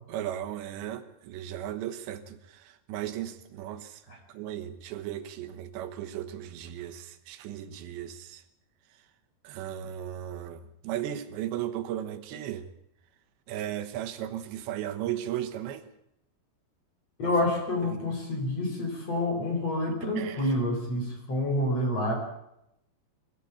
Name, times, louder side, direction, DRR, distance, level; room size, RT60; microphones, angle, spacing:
voice 1, 0.1-4.0 4.3-8.4 9.4-12.7 13.5-15.9 17.2-17.3 17.8-18.0 20.2-20.5, right 11 dB, 80° right, 8 dB, 3.4 m, -36 dB
voice 2, 17.2-22.1, left 1 dB, 35° left, 3 dB, 5.5 m, -28 dB
23.5 x 13.5 x 8.3 m, 0.81 s
omnidirectional pair, 5.1 m